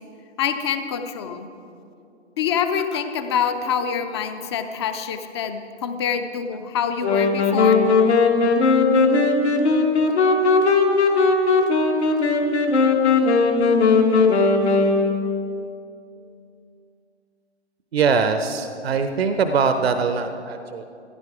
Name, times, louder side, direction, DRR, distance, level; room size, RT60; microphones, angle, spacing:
voice 1, 0.4-1.5 2.4-7.7, left 7 dB, 25° left, 8 dB, 0.6 m, -25 dB
sound 1, 7.0-15.5, left 3 dB, 70° left, 1.6 m, -18 dB
voice 2, 17.9-20.8, right 5 dB, 60° right, 9 dB, 0.8 m, -22 dB
15.0 x 10.5 x 4.9 m, 2.6 s
figure-of-eight pair, 130°, 34 cm